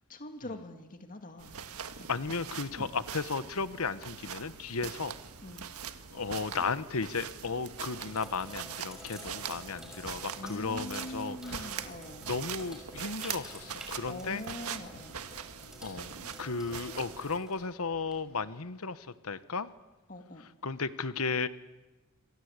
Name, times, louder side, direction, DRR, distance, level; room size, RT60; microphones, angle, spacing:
voice 1, 0.1-1.5 2.0-2.1 5.4-5.7 10.4-12.3 14.0-15.2 20.1-20.5, left 1 dB, 40° left, 6 dB, 2.3 m, -43 dB
sound 1, 1.4-17.4, right 7 dB, 85° right, 1.6 m, -42 dB
voice 2, 2.1-5.1 6.1-11.9 12.2-14.4 15.8-19.7 20.6-21.5, left 4 dB, 80° left, 14 dB, 1.1 m, -35 dB
Sink (filling or washing), 7.6-18.4, equal, 5° right, 5.9 m, -51 dB
27.5 x 23.5 x 8.2 m, 1.1 s
head